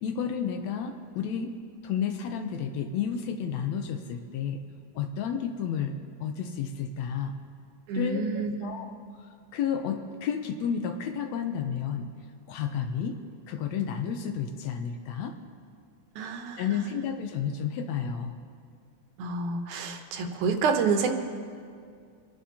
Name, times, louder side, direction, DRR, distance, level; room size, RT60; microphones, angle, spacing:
voice 1, 0.0-1.5 1.8-4.6 5.0-7.4 7.9-8.9 9.5-12.1 12.5-13.2 13.5-15.3 16.6-18.4, left 7 dB, 75° left, 6 dB, 1.8 m, -31 dB
voice 2, 7.9-8.8 16.2-17.0 19.2-21.1, right 5 dB, 80° right, 5 dB, 2.4 m, -29 dB
26.0 x 11.5 x 2.9 m, 2.2 s
omnidirectional pair, 3.4 m